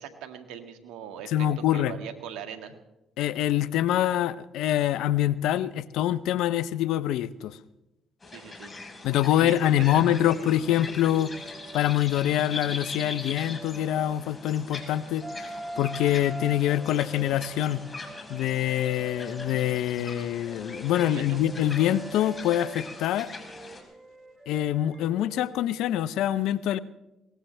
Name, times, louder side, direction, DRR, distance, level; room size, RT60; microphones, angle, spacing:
voice 1, 0.0-1.5 1.7-2.7 8.3-8.7 9.4-10.8 21.0-21.4, right 8 dB, 80° right, 6 dB, 1.8 m, -41 dB
voice 2, 1.3-1.9 3.2-7.6 9.0-11.3 11.7-15.3 15.8-17.8 18.3-23.3 24.5-26.8, left 12 dB, 75° left, 16 dB, 0.6 m, -25 dB
sound 1, 8.2-23.8, left 3 dB, 30° left, 4.4 m, -41 dB
eagle feather, 10.8-14.4 14.8-20.0 20.4-26.0, right 2 dB, 25° right, 1.4 m, -43 dB
22.5 x 19.0 x 3.3 m, 0.94 s
supercardioid pair, 60°, 0 cm